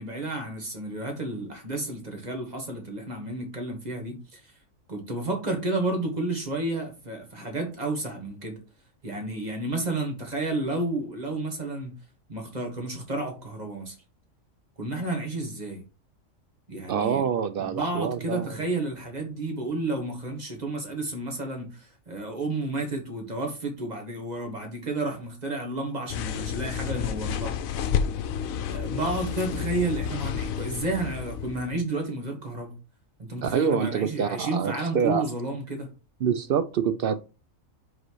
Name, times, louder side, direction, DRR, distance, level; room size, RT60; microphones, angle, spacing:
voice 1, 0.0-4.4 4.9-8.6 9.0-11.9 12.3-14.0 14.8-15.8 16.7-17.2 17.6-27.6 28.7-32.7 33.2-35.9, right 2 dB, 30° right, 1.7 m, -31 dB
voice 2, 16.9-18.6 33.4-35.2 36.2-37.2, right 7 dB, 65° right, 0.5 m, -26 dB
sound 1, 26.1-31.9, left 8 dB, 85° left, 1.0 m, -30 dB
5.1 x 4.1 x 4.6 m
omnidirectional pair, 1.4 m